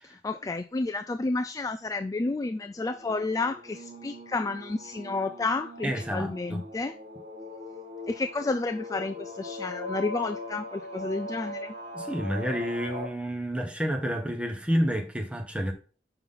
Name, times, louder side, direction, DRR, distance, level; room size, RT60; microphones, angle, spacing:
voice 1, 0.0-7.0 8.1-11.7, left 3 dB, 20° left, 0.3 m, -31 dB
sound 1, 2.7-13.1, left 2 dB, 75° right, 2.8 m, -40 dB
voice 2, 5.8-6.6 11.9-15.7, equal, 5° right, 1.1 m, -29 dB
5.9 x 5.6 x 3.8 m
head